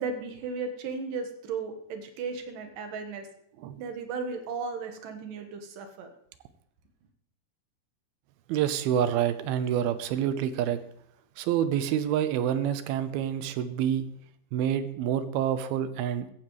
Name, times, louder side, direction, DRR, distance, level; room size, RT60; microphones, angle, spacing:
voice 1, 0.0-3.3 3.8-6.1, right 4 dB, 65° right, 5 dB, 2.8 m, -35 dB
voice 2, 8.5-10.8 11.4-14.1 14.5-16.3, right 10 dB, 85° right, 11 dB, 2.7 m, -27 dB
15.0 x 15.0 x 3.2 m, 0.72 s
omnidirectional pair, 4.4 m